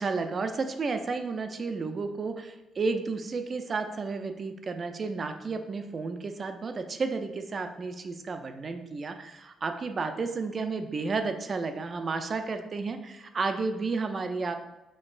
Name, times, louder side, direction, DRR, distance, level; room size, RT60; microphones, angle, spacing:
voice 1, 0.0-14.5, right 4 dB, 40° right, 7 dB, 0.4 m, -32 dB
5.2 x 2.8 x 2.5 m, 1.0 s
cardioid pair, 90°, 0 cm